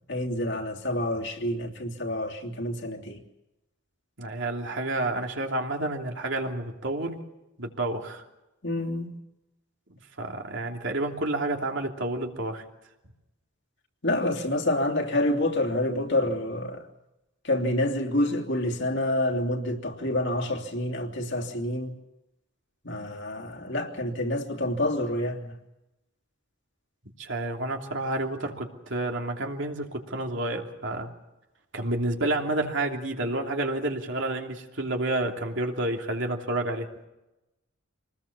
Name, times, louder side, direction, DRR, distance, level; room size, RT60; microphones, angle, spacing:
voice 1, 0.1-3.2 8.6-9.1 14.0-16.8 17.4-21.9 22.8-25.5, left 1 dB, 60° left, 3.0 m, -28 dB
voice 2, 4.2-7.2 7.6-8.2 10.2-12.6 27.2-31.1 31.7-36.9, right 2 dB, 60° right, 3.0 m, -30 dB
26.5 x 20.0 x 7.1 m
head